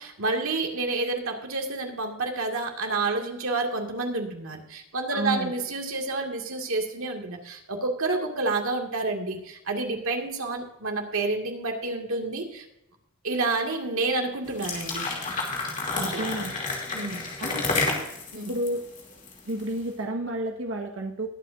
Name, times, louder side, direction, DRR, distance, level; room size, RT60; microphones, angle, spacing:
voice 1, 0.0-12.7 13.2-15.0 15.9-16.2 16.9-17.3 18.3-18.6, right 3 dB, 90° right, 3 dB, 2.1 m, -29 dB
voice 2, 5.1-5.5 16.0-16.5 17.4-18.0 18.5-18.8 19.4-21.3, right 1 dB, 70° right, 2 dB, 1.4 m, -31 dB
sound 1, 14.5-19.7, left 3 dB, 35° left, 2.7 m, -30 dB
21.0 x 8.5 x 2.6 m, 0.86 s
head